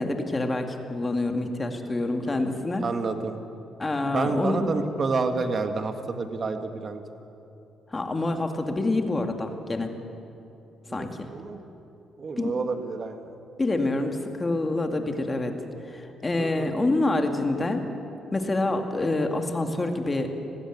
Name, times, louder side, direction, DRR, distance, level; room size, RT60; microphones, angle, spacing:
voice 1, 0.0-2.8 3.8-4.7 5.3-5.4 7.9-9.9 10.9-11.3 12.4-12.5 13.6-15.5 15.8-17.9 18.3-20.3, left 2 dB, 25° left, 5 dB, 2.3 m, -27 dB
voice 2, 2.8-3.4 4.1-7.0 10.9-11.6 12.2-13.3 16.4-16.7, right 4 dB, 45° right, 7 dB, 1.7 m, -29 dB
19.5 x 15.0 x 9.5 m, 2.8 s
cardioid pair, 90°, 0 cm